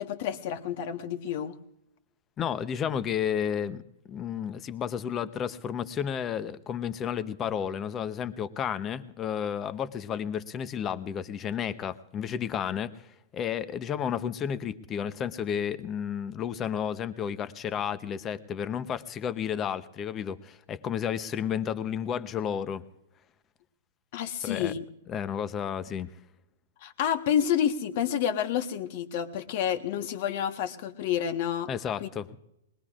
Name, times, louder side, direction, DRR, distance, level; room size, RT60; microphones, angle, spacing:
voice 1, 0.0-1.6 24.1-24.8 26.8-31.7 32.0-32.1, left 9 dB, 50° left, 9 dB, 1.2 m, -29 dB
voice 2, 2.4-3.8 4.1-22.8 24.4-24.7 25.1-26.1 31.7-32.3, left 8 dB, 25° left, 14 dB, 0.7 m, -32 dB
21.5 x 20.0 x 2.5 m, 0.84 s
hypercardioid pair, 140°, 0 cm